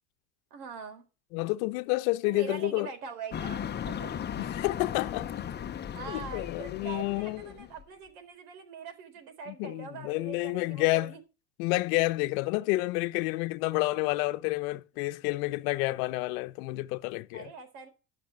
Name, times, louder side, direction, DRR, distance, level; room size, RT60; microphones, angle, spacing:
voice 1, 0.5-1.1 2.2-4.2 5.9-11.2 17.3-17.9, right 6 dB, 75° right, 4.3 m, -43 dB
voice 2, 1.3-2.9 4.4-5.5 6.1-7.4 9.5-11.1 11.6-17.5, left 20 dB, 65° left, 0.9 m, -29 dB
sound 1, 3.3-7.8, left 8 dB, 20° left, 0.9 m, -37 dB
13.5 x 6.0 x 6.5 m
supercardioid pair, 110°, 46 cm